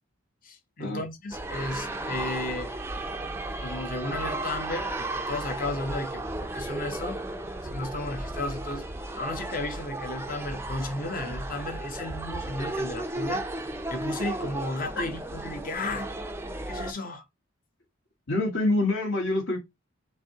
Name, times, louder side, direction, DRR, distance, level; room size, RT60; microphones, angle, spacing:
voice 1, 0.4-2.7 3.6-7.2 7.7-8.9 9.2-16.1 16.7-17.2, left 2 dB, 45° left, 0.9 m, -34 dB
sound 1, 1.3-16.9, right 2 dB, 10° right, 0.5 m, -34 dB
voice 2, 18.3-19.6, left 2 dB, 75° left, 2.0 m, -26 dB
6.6 x 2.7 x 2.8 m
head